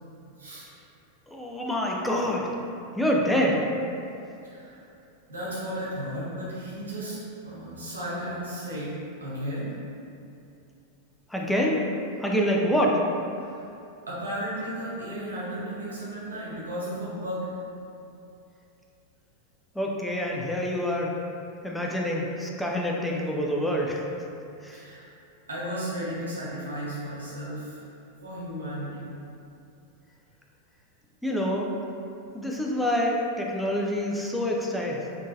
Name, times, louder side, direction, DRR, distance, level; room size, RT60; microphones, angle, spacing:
voice 1, 1.3-2.4 3.0-3.7 11.3-11.9 12.2-13.0 19.7-21.1 21.6-24.0 24.6-24.8 31.2-31.7 32.3-35.0, equal, 5° left, -2 dB, 0.4 m, -26 dB
voice 2, 4.4-4.8 5.3-7.2 7.4-8.9 9.2-9.8 13.4-13.6 14.1-17.5 24.7-25.1 25.5-27.8 28.2-29.1, equal, 75° right, -8 dB, 0.9 m, -34 dB
3.6 x 2.6 x 2.5 m, 2.7 s
figure-of-eight pair, 90°, 0 cm